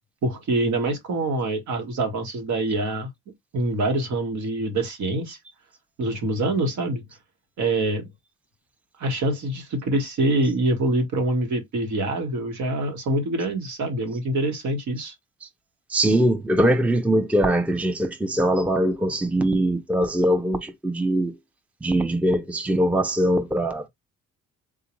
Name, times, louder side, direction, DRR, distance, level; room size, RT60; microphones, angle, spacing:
voice 1, 0.2-3.1 3.5-5.4 6.0-7.0 7.6-8.1 9.0-15.1, right 2 dB, 70° right, 1.3 m, -25 dB
voice 2, 15.9-21.4 21.8-23.9, right 1 dB, 5° right, 0.5 m, -22 dB
3.7 x 2.4 x 3.0 m
cardioid pair, 90°, 30 cm